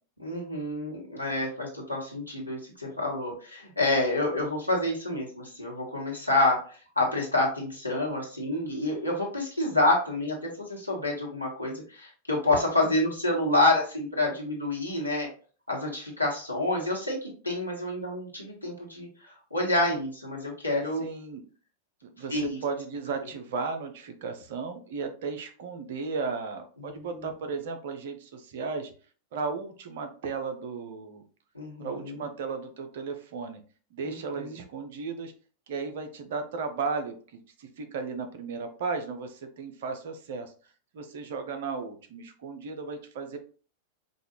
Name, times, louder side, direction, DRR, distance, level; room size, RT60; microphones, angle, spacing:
voice 1, 0.2-6.6 6.9-15.3 15.7-21.0 22.3-22.6 27.0-27.1 31.5-32.2 34.0-34.6, left 2 dB, 90° left, -3 dB, 1.4 m, -28 dB
voice 2, 21.0-21.4 22.0-28.9 29.3-31.2 31.8-33.6 33.9-35.3 35.7-40.5 40.9-43.4, right 4 dB, 55° right, 6 dB, 0.7 m, -35 dB
5.2 x 2.4 x 3.0 m, 0.40 s
figure-of-eight pair, 90°, 0 cm